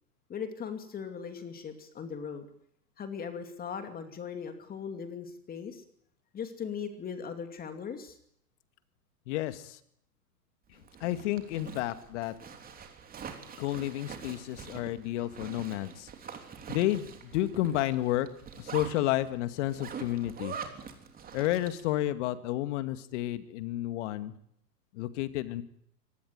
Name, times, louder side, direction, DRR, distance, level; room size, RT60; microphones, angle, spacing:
voice 1, 0.3-2.5 3.0-5.8 6.3-8.2, left 6 dB, 20° left, 7 dB, 2.6 m, -39 dB
voice 2, 9.3-9.8 11.0-12.3 13.6-16.1 16.7-18.3 18.6-20.6 21.3-24.3 24.9-25.6, left 14 dB, 45° left, 11 dB, 2.2 m, -31 dB
Zipper (clothing), 10.7-22.0, right 6 dB, 20° right, 3.3 m, -44 dB
24.0 x 19.5 x 9.5 m, 0.71 s
hypercardioid pair, 120°, 48 cm